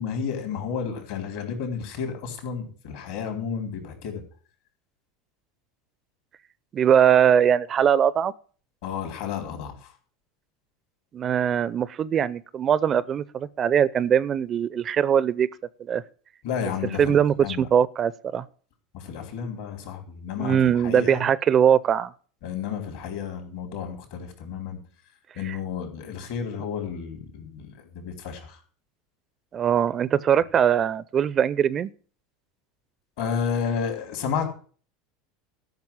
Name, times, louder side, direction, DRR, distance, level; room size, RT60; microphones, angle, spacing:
voice 1, 0.0-4.2 8.8-9.9 16.4-17.6 18.9-20.6 20.8-21.2 22.4-24.8 25.4-28.6 33.2-34.5, left 7 dB, 65° left, 3.9 m, -31 dB
voice 2, 6.7-8.3 11.1-15.5 15.9-16.0 17.0-18.4 20.4-22.1 25.4-25.6 29.5-31.9, right 8 dB, 35° right, 0.6 m, -21 dB
13.0 x 6.1 x 7.3 m
hypercardioid pair, 80°, 0 cm